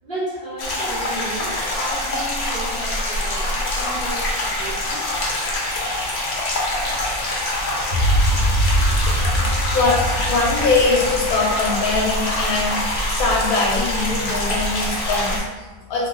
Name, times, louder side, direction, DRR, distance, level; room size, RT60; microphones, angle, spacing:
voice 1, 0.0-5.0 9.8-9.9, right 1 dB, 40° right, -9 dB, 1.2 m, -33 dB
sound 1, 0.6-15.4, left 1 dB, 55° left, 0.9 m, -25 dB
sound 2, 7.9-12.2, right 1 dB, 70° right, 1.3 m, -22 dB
voice 2, 8.2-16.1, left 3 dB, 70° left, -3 dB, 1.1 m, -23 dB
3.1 x 2.3 x 3.9 m, 1.3 s
omnidirectional pair, 1.6 m